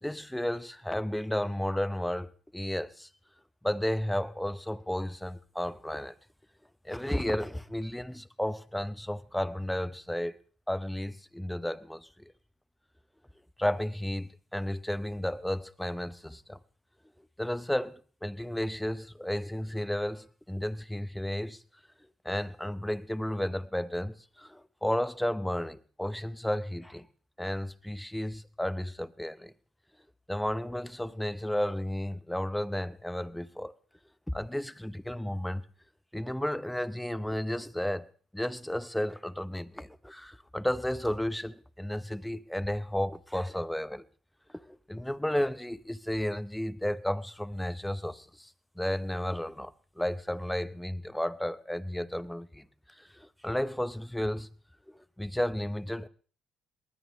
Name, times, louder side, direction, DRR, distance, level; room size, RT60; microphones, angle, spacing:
voice 1, 0.0-3.1 3.6-6.1 6.8-10.4 10.7-12.3 13.6-16.6 17.4-21.6 22.2-27.1 27.4-29.5 30.3-33.7 34.3-35.6 36.1-38.1 38.3-44.0 44.5-48.5 48.8-52.7 53.0-54.5 54.9-56.1, left 1 dB, 5° left, 0.8 m, -33 dB
21.0 x 19.5 x 3.2 m
supercardioid pair, 80°, 0 cm